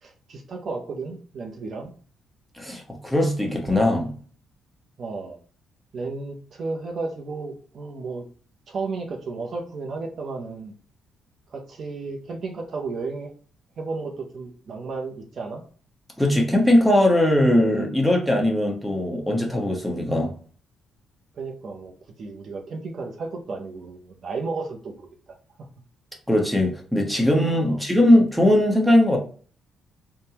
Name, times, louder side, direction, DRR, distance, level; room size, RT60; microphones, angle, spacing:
voice 1, 0.0-1.9 5.0-5.4 5.9-8.3 8.7-10.7 11.5-13.3 13.8-15.6 21.3-21.9 22.2-25.1 25.6-25.7 27.7-27.8, right 3 dB, 55° right, 2 dB, 0.6 m, -33 dB
voice 2, 2.6-4.1 16.2-20.3 26.3-29.2, left 1 dB, ahead, 1 dB, 1.0 m, -20 dB
3.5 x 2.1 x 2.8 m, 0.42 s
cardioid pair, 90°, 0 cm